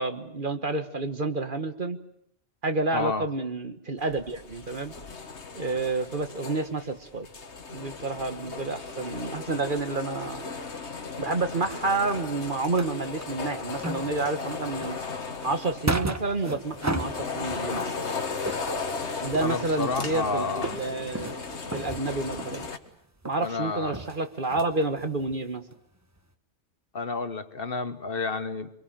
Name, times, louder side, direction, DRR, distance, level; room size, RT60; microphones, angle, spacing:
voice 1, 0.0-2.0 2.6-4.9 5.5-7.3 7.7-10.4 11.2-15.0 15.4-17.9 19.2-21.3 21.7-22.7 23.2-25.6, right 3 dB, 45° right, 9 dB, 1.7 m, -29 dB
voice 2, 2.9-3.3 19.4-20.8 23.4-24.0 26.9-28.7, left 4 dB, 55° left, 11 dB, 1.5 m, -30 dB
sound 1, 4.0-22.8, left 4 dB, 75° left, 1.9 m, -36 dB
sound 2, 11.4-13.5 13.8-18.0 18.3-22.9 23.2-23.5 23.8-25.4 25.7-25.8 26.2-26.3, right 2 dB, 15° right, 1.0 m, -35 dB
25.0 x 23.0 x 9.0 m, 0.70 s
omnidirectional pair, 1.2 m